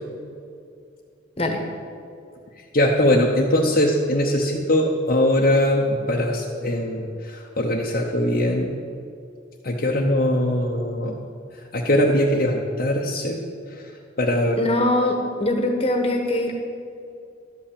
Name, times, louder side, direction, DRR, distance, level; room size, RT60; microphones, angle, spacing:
voice 1, 2.7-8.7 9.6-11.2 11.7-13.4 14.2-14.6, left 1 dB, 45° left, -2 dB, 0.9 m, -21 dB
voice 2, 14.6-16.5, left 1 dB, 30° left, 2 dB, 1.3 m, -22 dB
12.5 x 5.6 x 8.6 m, 2.4 s
head